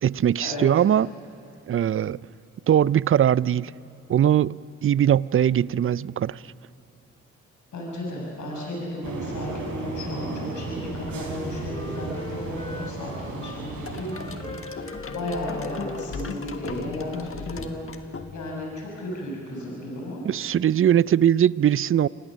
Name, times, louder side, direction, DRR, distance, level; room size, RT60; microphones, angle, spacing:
voice 1, 0.0-1.1 1.7-2.2 2.7-3.7 4.1-6.4 20.2-22.1, right 10 dB, 45° right, 0.5 m, -21 dB
voice 2, 7.7-20.2, left 1 dB, 75° left, 6.6 m, -34 dB
sound 1, 9.0-14.4, right 3 dB, 80° right, 4.1 m, -35 dB
Wind instrument woodwind instrument, 10.5-13.6 14.0-17.5, left 2 dB, 20° left, 1.9 m, -42 dB
sound 2, 13.9-18.7, left 5 dB, 45° left, 1.5 m, -36 dB
27.0 x 18.5 x 6.4 m
supercardioid pair, 45°, 30 cm